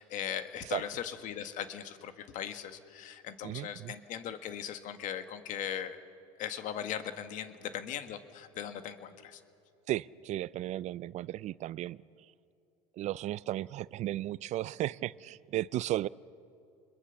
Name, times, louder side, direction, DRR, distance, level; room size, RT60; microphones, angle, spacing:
voice 1, 0.0-6.0 6.4-9.4, left 9 dB, 55° left, 9 dB, 1.8 m, -39 dB
voice 2, 3.4-3.9 9.9-12.0 13.0-16.1, right 14 dB, 50° right, 20 dB, 0.5 m, -35 dB
27.5 x 22.0 x 7.1 m, 2.7 s
supercardioid pair, 95°, 16 cm